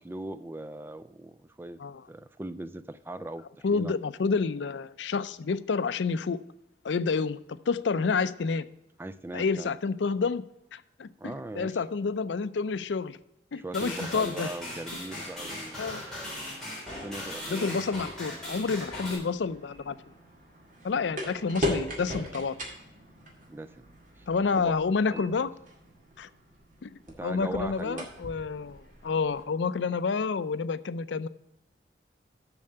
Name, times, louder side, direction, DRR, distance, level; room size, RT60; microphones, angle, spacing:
voice 1, 0.0-1.8 2.1-3.9 9.0-9.7 11.2-11.8 13.6-15.9 16.9-17.8 23.5-23.9 24.2-24.3 24.5-24.7 25.1-25.3 27.2-28.1, right 1 dB, 10° right, 13 dB, 0.3 m, -39 dB
voice 2, 3.6-6.4 6.8-8.7 9.3-10.4 10.7-13.2 13.5-14.5 15.8-16.0 17.5-20.0 20.8-22.5 24.3-25.5 26.2-26.3 26.8-26.9 27.2-31.3, left 4 dB, 80° left, 15 dB, 0.5 m, -29 dB
sound 1, 13.7-19.2, left 1 dB, 5° left, 3.3 m, -38 dB
sound 2, 18.5-29.4, left 1 dB, 45° right, 2.2 m, -39 dB
7.1 x 6.5 x 7.8 m, 0.88 s
head